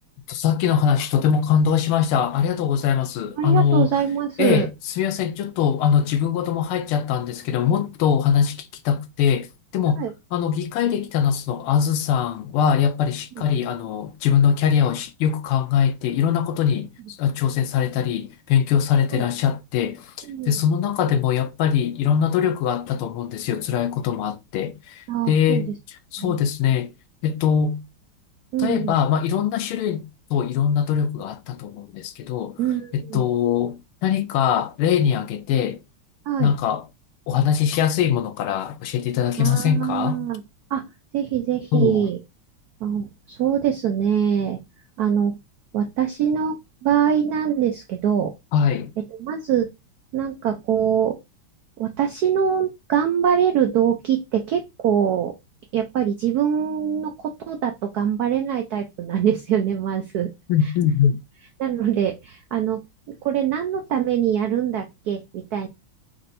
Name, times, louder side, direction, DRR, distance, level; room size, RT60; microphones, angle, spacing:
voice 1, 0.3-3.9 4.4-4.7 5.0-9.5 9.7-10.0 10.3-20.1 20.5-25.7 26.1-26.9 27.2-27.8 28.6-32.6 32.9-35.8 36.4-36.8 37.3-40.2 41.7-42.0 48.5-48.9 60.5-61.2, left 8 dB, 85° left, 1.5 m, -22 dB
voice 2, 3.4-4.7 10.0-10.1 19.1-19.2 20.3-20.5 25.1-25.6 26.2-26.4 28.5-29.0 32.6-33.2 36.3-36.5 39.4-40.4 40.7-40.8 41.1-42.2 42.8-44.6 45.0-45.4 45.7-48.3 49.2-49.7 50.1-51.2 51.8-55.3 55.7-60.3 61.6-62.8 63.2-65.7, right 9 dB, 85° right, 0.8 m, -23 dB
4.3 x 2.6 x 4.0 m
omnidirectional pair, 2.3 m